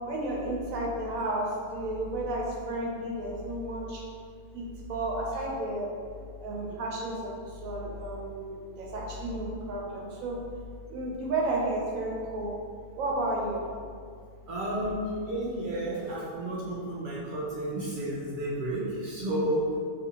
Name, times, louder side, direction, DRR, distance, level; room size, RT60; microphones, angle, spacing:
voice 1, 0.1-4.0 4.5-5.9 6.4-10.4 10.9-12.6 13.0-13.6, right 1 dB, 90° right, -2 dB, 1.0 m, -32 dB
voice 2, 14.5-19.8, right 1 dB, 65° right, -7 dB, 0.5 m, -31 dB
2.9 x 2.6 x 2.7 m, 2.1 s
omnidirectional pair, 1.4 m